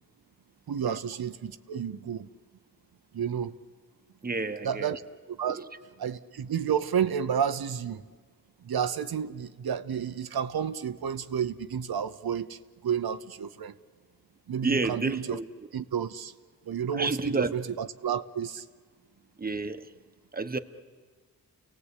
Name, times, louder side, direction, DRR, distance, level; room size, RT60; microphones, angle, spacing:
voice 1, 0.7-2.3 3.1-3.6 4.6-5.0 5.3-5.6 6.0-8.0 8.6-13.7 14.5-15.4 15.7-16.3 16.7-18.6, right 8 dB, 85° right, 0.8 m, -31 dB
voice 2, 4.2-5.0 5.6-5.7 14.6-15.5 16.9-17.5 19.4-19.9 20.3-20.6, right 3 dB, 25° right, 1.1 m, -30 dB
29.5 x 18.0 x 8.3 m
wide cardioid pair, 80°, 36 cm